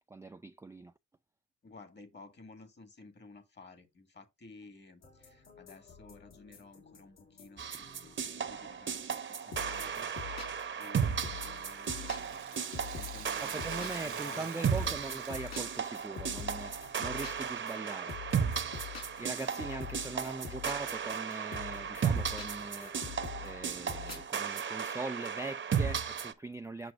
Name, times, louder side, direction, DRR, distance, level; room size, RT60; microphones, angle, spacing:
voice 1, 0.1-0.9 13.4-18.2 19.2-26.9, right 3 dB, 10° right, 0.3 m, -41 dB
voice 2, 1.6-10.4 10.8-14.7 19.9-20.0, left 3 dB, 35° left, 1.8 m, -54 dB
sound 1, 5.0-8.9 9.5-24.2, left 7 dB, 60° left, 1.8 m, -47 dB
sound 2, 7.6-26.3, right 7 dB, 40° right, 0.9 m, -35 dB
Rattle (instrument), 11.3-16.6 16.9-17.0 17.8-17.9, right 12 dB, 80° right, 0.9 m, -49 dB
7.8 x 6.0 x 2.5 m
cardioid pair, 90°, 30 cm